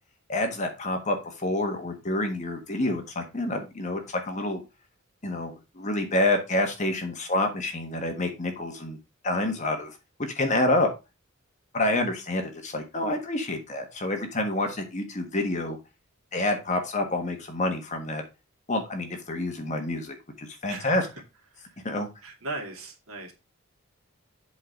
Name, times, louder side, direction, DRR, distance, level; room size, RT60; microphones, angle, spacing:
voice 1, 0.3-4.6 5.2-9.0 9.2-10.9 11.7-15.8 16.3-18.2 18.7-21.1 21.8-22.1, left 2 dB, 35° left, 4 dB, 1.5 m, -28 dB
voice 2, 22.2-23.3, right 2 dB, 85° right, 1 dB, 2.6 m, -37 dB
7.7 x 4.0 x 5.1 m, 0.27 s
head